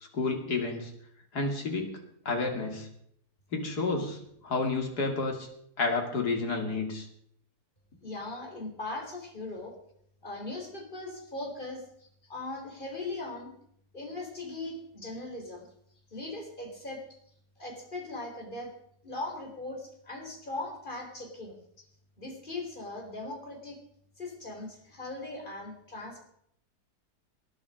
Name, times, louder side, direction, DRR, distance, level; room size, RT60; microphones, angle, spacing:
voice 1, 0.1-0.9 1.3-2.0 2.2-2.9 3.5-5.5 5.8-7.1, left 3 dB, 80° left, 3 dB, 3.2 m, -30 dB
voice 2, 8.0-9.7 10.2-11.8 12.3-13.5 13.9-15.7 16.1-17.1 17.6-18.7 19.0-21.6 22.2-23.8 24.2-26.2, left 2 dB, 30° left, 1 dB, 4.3 m, -39 dB
20.0 x 11.0 x 5.1 m, 0.69 s
omnidirectional pair, 1.7 m